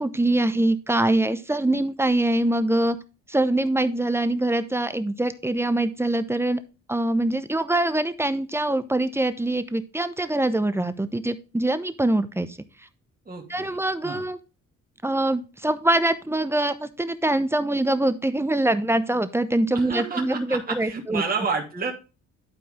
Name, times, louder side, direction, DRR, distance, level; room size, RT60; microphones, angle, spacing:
voice 1, 0.0-3.0 3.3-6.6 6.9-12.6 13.5-14.4 15.0-21.2, right 1 dB, 10° right, 12 dB, 0.8 m, -24 dB
voice 2, 13.3-14.2 19.7-21.9, right 4 dB, 30° right, -1 dB, 2.7 m, -30 dB
11.5 x 4.6 x 3.6 m, 0.30 s
cardioid pair, 90°, 30 cm